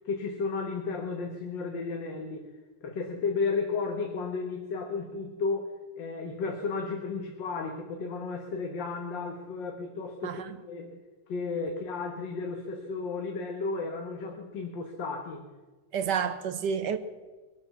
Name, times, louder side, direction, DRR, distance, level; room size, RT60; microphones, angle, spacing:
voice 1, 0.1-2.5 2.8-5.7 6.0-11.0 11.3-15.4, left 4 dB, 60° left, 1.9 m, -33 dB
voice 2, 15.9-17.0, right 7 dB, 60° right, 1.3 m, -29 dB
22.5 x 8.5 x 5.8 m
omnidirectional pair, 2.3 m